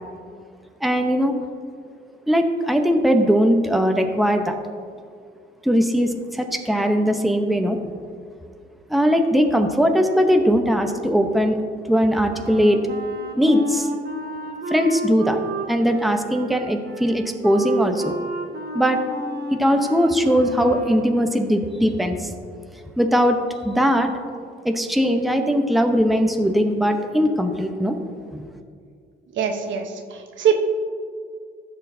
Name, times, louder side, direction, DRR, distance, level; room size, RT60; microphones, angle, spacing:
voice 1, 0.8-1.3 2.3-4.6 5.6-7.8 8.9-11.6 11.9-12.8 13.4-13.9 14.7-15.4 15.7-18.1 18.7-19.0 19.5-22.3 23.0-23.4 23.6-24.1 24.6-28.0 28.3-28.4, equal, ahead, 4 dB, 0.8 m, -20 dB
Wind instrument woodwind instrument, 12.3-21.1, right 2 dB, 50° right, 1.2 m, -32 dB
voice 2, 29.3-30.6, right 8 dB, 70° right, 4 dB, 1.0 m, -23 dB
15.0 x 6.4 x 2.7 m, 2.2 s
cardioid pair, 90°, 20 cm